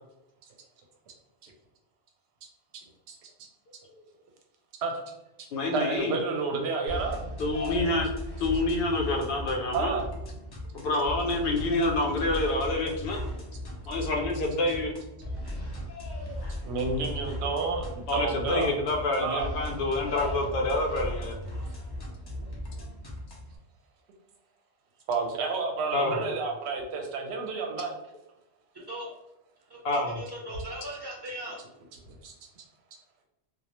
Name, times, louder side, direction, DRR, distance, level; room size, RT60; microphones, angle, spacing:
voice 1, 2.7-3.3 4.8-5.0 5.7-7.2 9.7-10.1 16.6-18.7 19.2-19.5 25.1-28.0 32.1-32.3, right 4 dB, 70° right, 2 dB, 0.8 m, -30 dB
voice 2, 5.5-6.1 7.4-8.1 8.4-9.9 10.7-13.2 13.9-14.9 18.1-21.4 25.9-26.2 29.8-30.2, left 2 dB, 65° left, 1 dB, 0.7 m, -27 dB
sound 1, 6.9-23.6, left 1 dB, 35° left, 0.4 m, -37 dB
voice 3, 28.7-29.1 29.7-31.6, right 1 dB, 25° right, -5 dB, 0.6 m, -39 dB
2.3 x 2.0 x 2.8 m, 0.89 s
omnidirectional pair, 1.2 m